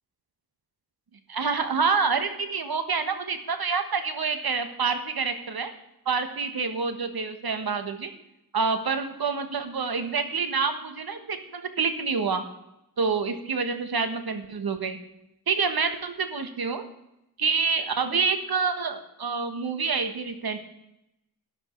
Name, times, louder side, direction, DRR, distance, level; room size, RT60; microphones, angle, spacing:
voice 1, 1.3-5.7 6.0-8.1 8.5-12.4 13.0-15.0 15.5-16.8 17.4-20.6, right 5 dB, 70° right, 8 dB, 1.5 m, -27 dB
12.5 x 11.0 x 4.5 m, 0.85 s
cardioid pair, 55°, 38 cm